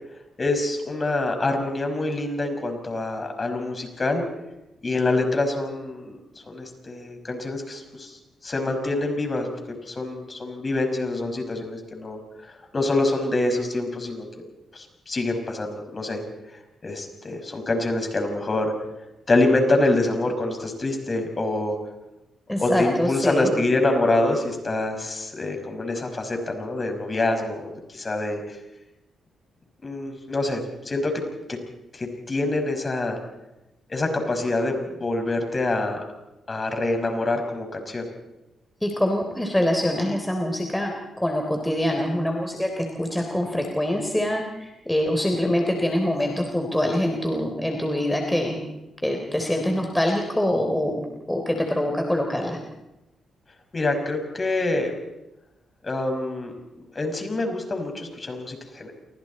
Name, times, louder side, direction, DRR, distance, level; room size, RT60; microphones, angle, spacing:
voice 1, 0.4-4.2 4.8-6.2 6.5-9.5 9.9-14.3 14.7-16.2 16.8-18.7 19.3-21.8 22.6-28.6 29.8-31.2 31.9-33.2 33.9-36.0 36.5-38.1 53.7-54.9 55.8-56.5 56.9-58.9, left 2 dB, 35° left, 5 dB, 5.8 m, -26 dB
voice 2, 22.5-23.5 38.8-40.9 41.2-48.6 49.0-52.6, left 1 dB, 10° left, 2 dB, 3.5 m, -24 dB
28.5 x 24.5 x 4.3 m, 0.93 s
supercardioid pair, 60°, 0 cm